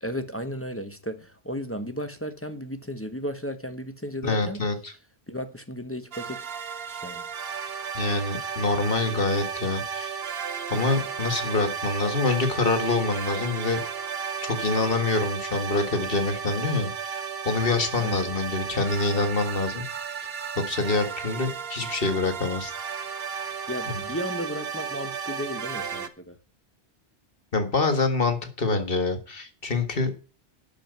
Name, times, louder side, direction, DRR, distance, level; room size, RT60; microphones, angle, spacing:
voice 1, 0.0-4.6 5.3-6.4 6.9-7.3 18.0-18.2 23.7-26.4, equal, 15° left, 1.0 m, -34 dB
voice 2, 4.2-4.9 7.9-10.2 10.7-13.8 14.5-19.9 20.6-22.7 27.5-30.1, left 3 dB, 55° left, 2.0 m, -26 dB
sound 1, 6.1-26.1, right 7 dB, 60° right, 1.2 m, -34 dB
12.5 x 5.2 x 7.9 m
omnidirectional pair, 1.1 m